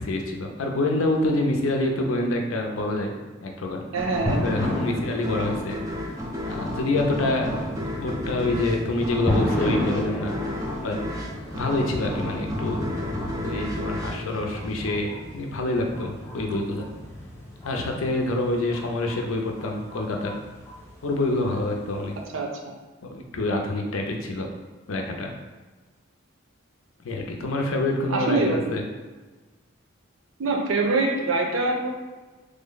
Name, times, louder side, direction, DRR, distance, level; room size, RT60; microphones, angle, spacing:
voice 1, 0.0-3.1 3.4-3.8 4.4-6.1 6.4-7.7 8.0-10.4 10.8-11.0 11.5-13.0 13.4-16.9 17.6-20.4 21.0-22.1 23.0-24.5 24.9-25.3 27.0-28.8, left 2 dB, 90° left, 2 dB, 0.5 m, -26 dB
voice 2, 3.9-4.4 22.3-22.7 28.1-28.7 30.4-31.9, right 3 dB, 80° right, 1 dB, 0.6 m, -24 dB
sound 1, 4.0-15.2, left 1 dB, 15° right, 0.3 m, -33 dB
sound 2, 4.3-22.2, left 1 dB, 15° left, 0.7 m, -33 dB
3.2 x 2.1 x 3.8 m, 1.3 s
head